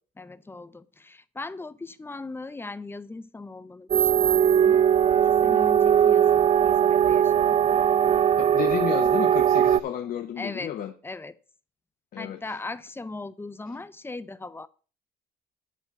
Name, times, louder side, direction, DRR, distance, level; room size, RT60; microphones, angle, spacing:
voice 1, 0.2-4.9 5.2-7.6 10.4-10.7 11.0-11.4 12.2-14.7, left 3 dB, 15° left, 0.6 m, -39 dB
sound 1, 3.9-9.8, right 9 dB, 35° right, 0.4 m, -20 dB
voice 2, 8.4-10.9 12.1-12.4, left 10 dB, 60° left, 1.0 m, -31 dB
11.0 x 4.4 x 6.9 m
cardioid pair, 110°, 17 cm